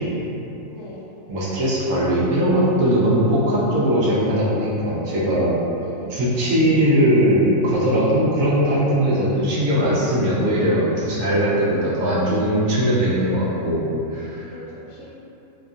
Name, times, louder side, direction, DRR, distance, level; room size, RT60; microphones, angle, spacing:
voice 1, 0.7-1.1 3.4-3.6 5.7-6.2 9.1-9.3 11.6-12.5 14.4-15.1, left 1 dB, 70° left, -6 dB, 0.9 m, -39 dB
voice 2, 1.3-5.6 6.1-14.5, equal, 70° right, -7 dB, 1.0 m, -20 dB
2.9 x 2.5 x 2.3 m, 3.0 s
omnidirectional pair, 1.5 m